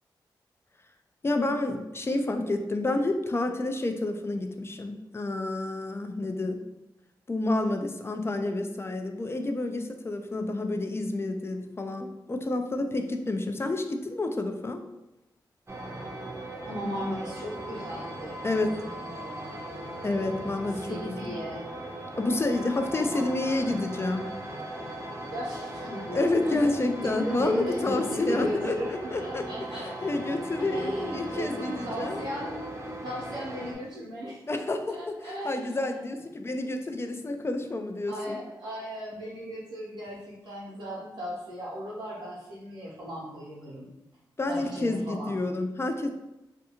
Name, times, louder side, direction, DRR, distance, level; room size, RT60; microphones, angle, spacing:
voice 1, 1.2-6.6 7.3-14.8 18.4-18.8 20.0-21.3 22.2-24.3 26.1-29.4 29.7-32.2 34.5-38.4 44.4-46.1, left 2 dB, 30° left, 6 dB, 0.4 m, -29 dB
sound 1, 15.7-33.7, right 1 dB, 30° right, 0.6 m, -38 dB
voice 2, 16.6-19.6 20.7-21.7 22.9-23.8 25.3-26.6 27.0-30.3 30.7-32.5 33.0-34.4 34.9-36.0 38.1-43.9 44.5-45.4, equal, 85° right, -10 dB, 0.9 m, -37 dB
2.5 x 2.3 x 2.8 m, 0.94 s
cardioid pair, 50°, 9 cm